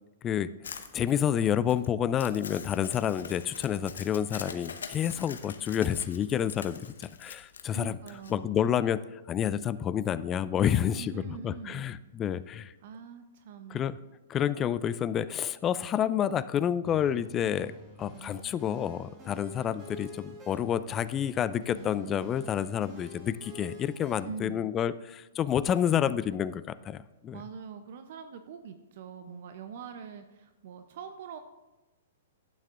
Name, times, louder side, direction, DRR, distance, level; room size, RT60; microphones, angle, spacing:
voice 1, 0.2-8.0 8.3-12.7 13.7-14.0 14.3-17.7 18.0-27.4, left 9 dB, 25° left, 16 dB, 0.3 m, -29 dB
Crumpling crinkling, 0.6-8.3, left 6 dB, 80° left, 0.9 m, -44 dB
voice 2, 7.7-8.6 10.9-11.8 12.2-12.4 12.8-13.8 24.2-24.7 27.3-31.4, right 6 dB, 60° right, 8 dB, 0.6 m, -43 dB
sound 1, 16.8-24.2, equal, 25° right, 3.4 m, -48 dB
11.5 x 9.1 x 2.5 m, 1.1 s
hypercardioid pair, 130°, 0 cm